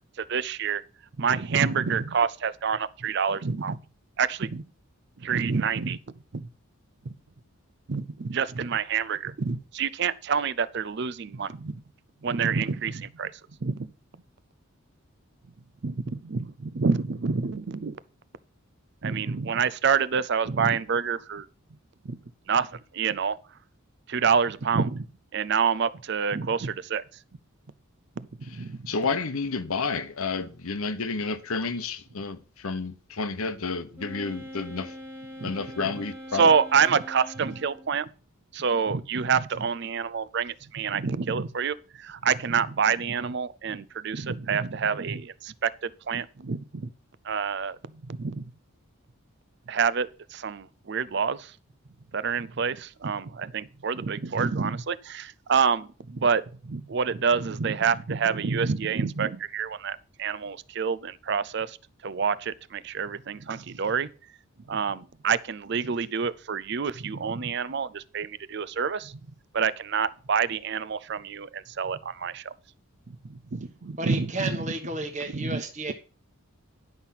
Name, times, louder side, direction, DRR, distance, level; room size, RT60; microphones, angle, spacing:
voice 1, 0.2-0.8 1.2-3.8 4.2-4.6 5.2-6.0 7.9-11.8 12.2-13.3 13.6-13.9 15.8-18.0 19.0-21.4 22.0-22.2 22.5-22.7 22.9-23.4 24.1-25.1 25.3-27.0 28.2-28.9 35.4-35.5 36.3-38.1 38.5-46.9 47.2-47.8 48.1-48.4 49.7-51.5 52.1-61.8 62.0-64.1 64.7-69.2 69.5-72.5 73.3-74.6 75.3-75.6, right 6 dB, 50° right, 0.5 m, -27 dB
voice 2, 28.5-34.9 35.4-36.5, left 4 dB, 80° left, 1.0 m, -31 dB
Wind instrument woodwind instrument, 34.0-38.0, equal, 10° right, 1.4 m, -42 dB
voice 3, 74.0-75.9, right 2 dB, 35° right, 1.1 m, -32 dB
10.5 x 5.8 x 5.7 m
head